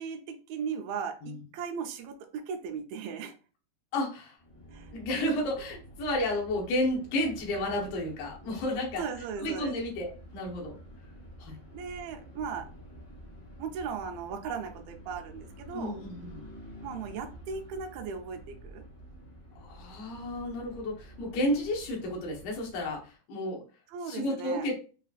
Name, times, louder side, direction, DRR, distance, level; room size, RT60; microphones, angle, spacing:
voice 1, 0.0-3.3 4.7-4.9 9.0-9.7 11.7-12.7 13.6-16.0 16.8-18.8 23.9-24.7, right 6 dB, 80° right, 4 dB, 2.3 m, -37 dB
voice 2, 3.9-4.4 4.9-9.0 9.4-10.8 11.4-11.6 15.7-16.5 19.6-23.6 24.0-24.8, left 1 dB, 90° left, -1 dB, 2.9 m, -32 dB
sound 1, 4.4-23.1, equal, 55° left, 0.6 m, -49 dB
6.7 x 2.3 x 2.4 m, 0.36 s
omnidirectional pair, 4.1 m